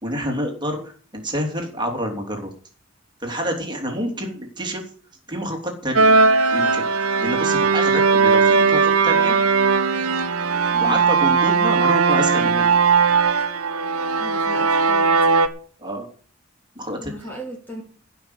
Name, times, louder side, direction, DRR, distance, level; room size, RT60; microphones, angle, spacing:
voice 1, 0.0-2.5 3.2-4.8 5.3-6.1 6.5-6.9 7.2-9.3 10.8-12.7 15.8-16.0 16.7-17.1, equal, 20° right, 1 dB, 3.2 m, -27 dB
sound 1, 6.0-15.5, right 4 dB, 85° right, 1.3 m, -18 dB
voice 2, 10.7-11.0 14.2-15.4 17.0-17.8, equal, 10° left, 0 dB, 2.6 m, -36 dB
15.0 x 6.1 x 8.2 m, 0.43 s
head